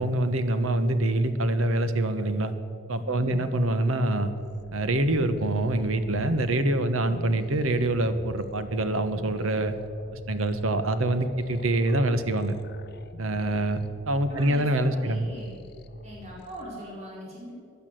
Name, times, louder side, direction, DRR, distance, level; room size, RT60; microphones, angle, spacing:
voice 1, 0.0-2.5 2.9-4.3 4.7-9.7 10.3-12.6 13.2-13.8 14.1-15.3, right 1 dB, 75° right, 10 dB, 1.2 m, -25 dB
voice 2, 3.1-3.4 6.8-7.2 14.3-15.6 16.0-17.5, equal, 30° right, -5 dB, 4.5 m, -41 dB
sound 1, 4.3-16.8, left 2 dB, 50° left, 0.8 m, -47 dB
15.5 x 10.5 x 7.8 m, 2.4 s
head